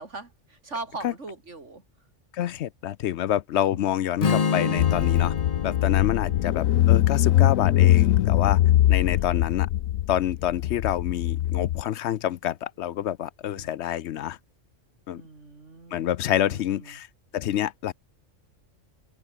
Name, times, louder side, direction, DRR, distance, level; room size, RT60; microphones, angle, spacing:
voice 1, 0.0-1.8 3.7-4.0 6.2-6.6 8.8-9.5 13.5-13.8 15.2-17.0, right 3 dB, 60° right, 3.4 m, -41 dB
voice 2, 2.3-5.3 5.6-8.6 8.9-9.7 10.1-14.4 15.1-15.2 15.9-17.1 17.3-17.9, left 11 dB, 65° left, 0.8 m, -27 dB
Strum, 4.2-8.4, left 5 dB, 35° left, 0.8 m, -29 dB
Car / Engine, 4.8-11.8, left 13 dB, 85° left, 1.0 m, -22 dB
omnidirectional pair, 1.4 m